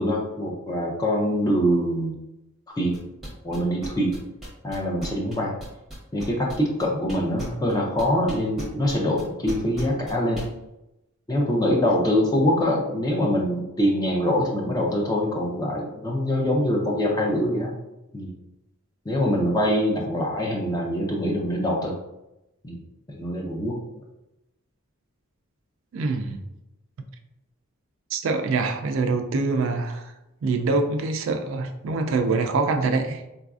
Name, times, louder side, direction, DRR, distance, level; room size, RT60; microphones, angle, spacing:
voice 1, 0.0-2.2 2.8-3.0 3.4-4.1 4.6-5.5 6.1-10.4 11.3-17.7 18.1-18.3 19.1-21.9 22.6-22.8 23.1-23.8, equal, 15° left, -1 dB, 0.4 m, -24 dB
sound 1, 2.9-10.5, right 1 dB, ahead, 0.8 m, -36 dB
voice 2, 25.9-26.4 28.1-30.1 30.4-33.2, right 3 dB, 65° right, 6 dB, 0.3 m, -24 dB
3.9 x 2.4 x 2.3 m, 0.92 s
head